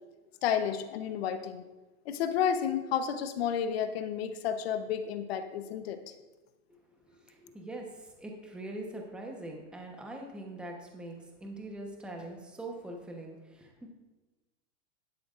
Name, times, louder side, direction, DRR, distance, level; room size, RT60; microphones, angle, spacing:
voice 1, 0.4-1.6 2.0-6.1, left 8 dB, 60° left, 9 dB, 1.0 m, -31 dB
voice 2, 7.1-11.1 11.4-13.9, right 1 dB, 5° right, 1 dB, 1.0 m, -43 dB
11.5 x 11.0 x 2.5 m, 1.2 s
supercardioid pair, 145°, 34 cm